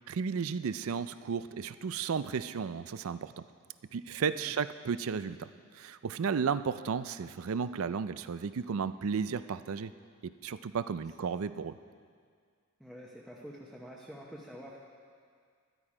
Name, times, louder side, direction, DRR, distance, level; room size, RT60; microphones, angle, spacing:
voice 1, 0.1-3.3 3.9-5.5 5.7-9.9 10.2-11.8, right 6 dB, 70° right, 14 dB, 0.4 m, -33 dB
voice 2, 12.8-14.8, equal, ahead, -5 dB, 0.9 m, -47 dB
13.0 x 11.5 x 4.9 m, 2.1 s
head